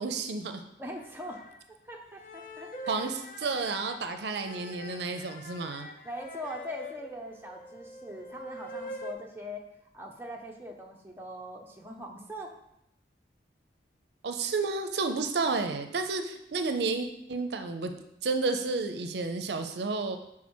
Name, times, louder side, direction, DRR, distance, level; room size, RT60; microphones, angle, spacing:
voice 1, 0.0-0.6 2.9-5.9 14.2-17.9 18.2-20.2, right 3 dB, 70° right, 7 dB, 0.5 m, -31 dB
voice 2, 0.8-1.4 1.9-3.1 6.0-9.6 9.9-12.5, equal, 10° right, 0 dB, 0.5 m, -41 dB
sound 1, 0.9-1.6 2.1-9.1, left 1 dB, 45° left, 0.5 m, -44 dB
6.1 x 3.7 x 4.4 m, 0.81 s
head